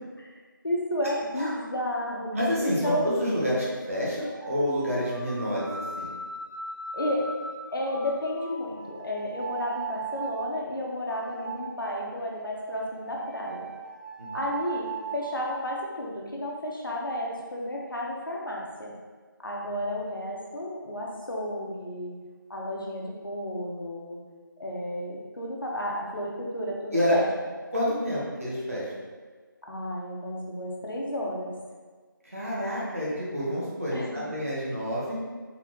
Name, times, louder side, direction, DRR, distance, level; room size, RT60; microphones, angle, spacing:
voice 1, 0.6-2.3 2.6-3.1 6.9-7.3 7.7-13.7 14.3-18.9 19.4-22.2 22.5-24.2 24.6-27.3 29.7-31.5 33.9-34.2, left 1 dB, 70° left, -3 dB, 1.1 m, -32 dB
voice 2, 2.3-6.1 14.2-14.4 19.6-19.7 26.9-27.1 27.7-28.9 32.2-35.2, equal, 40° right, -7 dB, 1.2 m, -28 dB
sound 1, 4.2-10.5 11.0-15.6, right 5 dB, 20° left, 0.8 m, -39 dB
4.1 x 3.9 x 3.0 m, 1.4 s
figure-of-eight pair, 180°, 12 cm